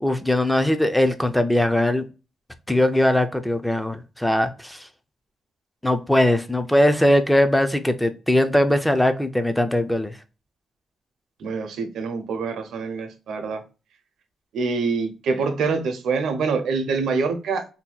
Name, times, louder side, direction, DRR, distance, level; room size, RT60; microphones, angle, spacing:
voice 1, 0.0-2.0 2.7-4.9 5.8-10.2, left 1 dB, 5° left, 0.3 m, -20 dB
voice 2, 11.4-13.6 14.5-17.6, right 4 dB, 85° right, 0.6 m, -25 dB
2.7 x 2.2 x 3.8 m
wide cardioid pair, 140°, 0 cm